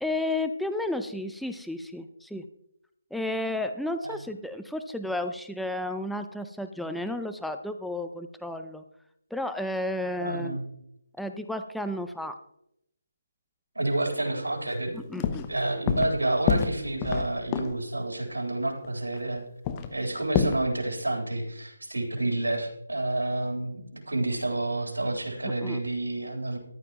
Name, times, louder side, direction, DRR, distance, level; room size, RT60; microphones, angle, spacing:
voice 1, 0.0-2.4 3.1-8.8 9.3-10.6 11.2-12.3 14.9-15.4 20.4-20.5 25.6-25.8, left 1 dB, ahead, 7 dB, 0.5 m, -32 dB
voice 2, 10.2-10.6 13.8-14.9 15.2-19.4 19.9-26.6, right 2 dB, 80° right, 0 dB, 3.6 m, -29 dB
sound 1, 14.7-14.8 15.1-15.5 15.9-16.2 16.5-17.8 18.8-18.9 19.1-19.2 19.6-20.6, left 8 dB, 20° left, 0.8 m, -27 dB
14.0 x 11.5 x 3.0 m, 0.77 s
figure-of-eight pair, 150°, 0 cm